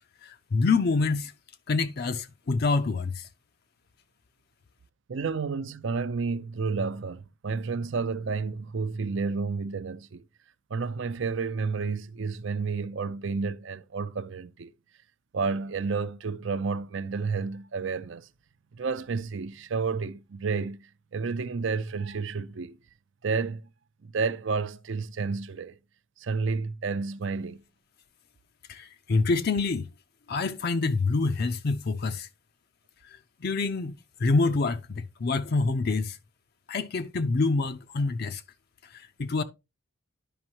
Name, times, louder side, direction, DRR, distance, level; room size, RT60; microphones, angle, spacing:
voice 1, 0.2-1.3 1.7-3.3 28.7-29.9 30.3-32.3 33.0-36.2 36.7-38.4 38.9-39.4, left 3 dB, 50° left, 0.5 m, -27 dB
voice 2, 5.1-10.2 10.7-14.7 15.3-18.3 18.7-22.8 23.2-23.6 24.0-25.8 26.2-27.6, right 4 dB, 60° right, 0.5 m, -31 dB
11.0 x 5.3 x 2.9 m
head